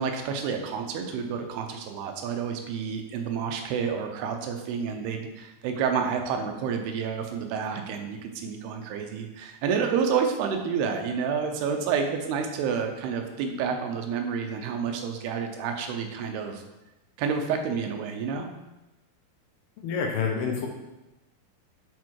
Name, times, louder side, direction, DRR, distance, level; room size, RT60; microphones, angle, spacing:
voice 1, 0.0-16.6 17.2-18.5, right 6 dB, 90° right, 4 dB, 2.9 m, -29 dB
voice 2, 19.8-20.7, left 6 dB, 80° left, 1 dB, 3.0 m, -27 dB
8.2 x 4.6 x 4.7 m, 1.0 s
omnidirectional pair, 4.5 m